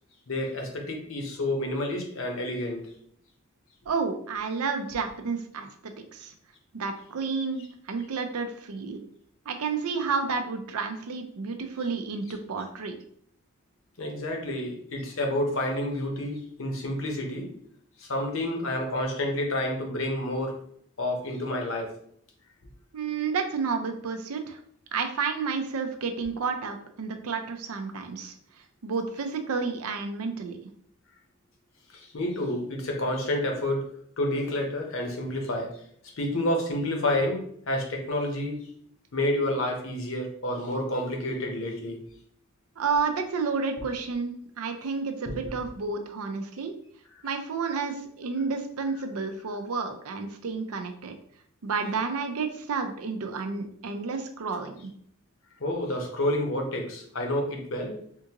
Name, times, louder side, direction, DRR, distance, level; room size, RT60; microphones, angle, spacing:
voice 1, 0.3-2.9 14.0-17.5 18.0-20.6 21.0-21.9 31.9-33.9 34.2-35.8 36.2-38.6 39.1-42.0 45.3-45.4 55.6-58.0, left 1 dB, 65° left, 2 dB, 0.8 m, -29 dB
voice 2, 3.9-6.3 6.7-9.0 9.5-13.0 22.9-24.6 24.9-28.3 28.8-30.6 42.8-46.7 47.2-51.2 51.6-54.9, right 5 dB, 80° right, 6 dB, 0.5 m, -31 dB
3.6 x 2.5 x 2.9 m, 0.64 s
head